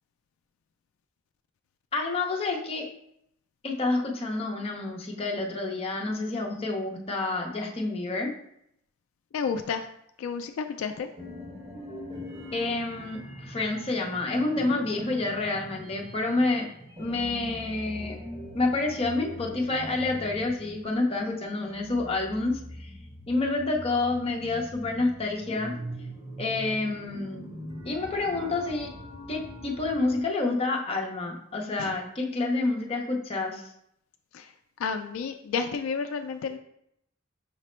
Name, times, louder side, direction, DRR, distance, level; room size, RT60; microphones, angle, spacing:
voice 1, 1.9-2.9 3.6-8.3 12.5-16.7 17.0-18.2 18.5-22.9 23.3-25.7 26.4-27.5 27.8-28.9 29.3-33.6, left 2 dB, 30° left, 0 dB, 0.6 m, -28 dB
voice 2, 9.3-9.9 10.2-11.1 31.8-31.9 34.3-34.5 34.8-36.6, left 5 dB, 75° left, 7 dB, 0.3 m, -31 dB
sound 1, 11.2-30.2, equal, 30° right, 1.1 m, -42 dB
5.7 x 2.0 x 4.3 m, 0.74 s
head